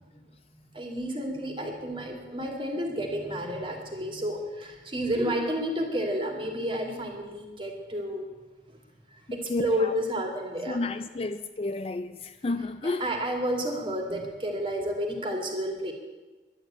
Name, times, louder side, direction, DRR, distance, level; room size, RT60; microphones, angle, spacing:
voice 1, 0.7-8.3 9.3-10.8 12.8-15.9, equal, 25° right, 2.4 m, -31 dB
voice 2, 9.3-9.9 10.7-13.1, left 2 dB, 30° left, 0.4 m, -31 dB
11.5 x 11.0 x 8.8 m
head